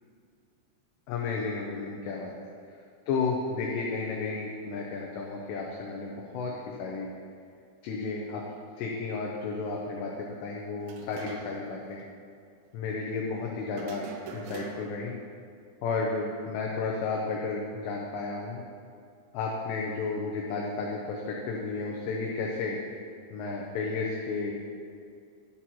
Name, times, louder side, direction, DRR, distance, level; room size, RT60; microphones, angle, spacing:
voice 1, 1.1-2.3 3.1-7.1 7.8-8.4 8.8-12.0 12.7-14.1 14.3-15.2 15.8-18.6 19.3-22.8 23.3-24.5, left 4 dB, 85° left, -2 dB, 2.5 m, -32 dB
sound 1, 10.8-11.7 12.0-12.1 13.7-15.1, right 5 dB, 90° right, 2.4 m, -43 dB
12.0 x 4.2 x 6.1 m, 2.3 s
omnidirectional pair, 5.9 m